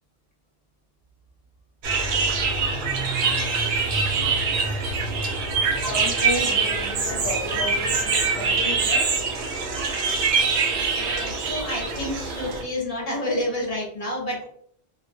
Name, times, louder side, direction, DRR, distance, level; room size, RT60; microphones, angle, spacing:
sound 1, 1.8-12.6, right 4 dB, 65° right, 0.7 m, -24 dB
voice 1, 5.8-9.1, left 1 dB, 70° left, 1.0 m, -32 dB
voice 2, 10.7-14.4, left 1 dB, 40° left, 0.7 m, -29 dB
2.5 x 2.0 x 2.5 m
omnidirectional pair, 1.2 m